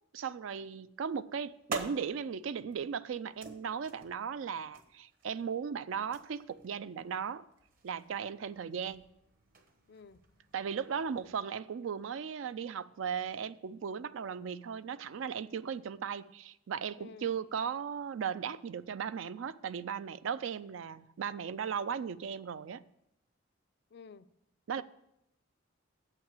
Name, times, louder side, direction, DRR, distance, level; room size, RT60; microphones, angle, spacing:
voice 1, 0.1-7.4 7.8-9.0 10.5-22.8 24.7-24.8, right 7 dB, 80° right, 0.4 m, -37 dB
sound 1, 1.0-11.4, right 3 dB, 45° right, 1.1 m, -49 dB
voice 2, 9.9-10.2 17.0-17.3 23.9-24.3 24.8-24.9, left 5 dB, 60° left, 0.4 m, -52 dB
7.3 x 5.7 x 7.5 m
head